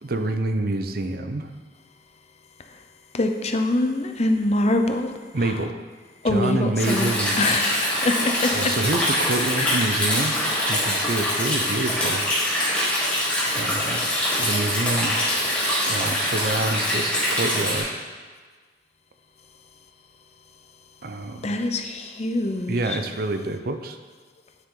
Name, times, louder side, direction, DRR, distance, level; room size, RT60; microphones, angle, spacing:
voice 1, 0.0-1.5 5.3-5.8 6.2-7.6 8.5-10.4 10.7-12.3 13.6-14.0 14.4-15.2 15.6-18.0 21.0-21.5 22.7-24.0, right 2 dB, 55° right, 7 dB, 0.7 m, -27 dB
voice 2, 3.1-5.1 5.4-5.5 6.2-7.1 7.4-8.7 9.5-9.8 21.4-23.0, left 2 dB, 35° left, 5 dB, 0.7 m, -24 dB
Stream, 6.8-17.8, left 1 dB, 5° left, 3.2 m, -24 dB
9.6 x 9.1 x 3.9 m, 1.5 s
head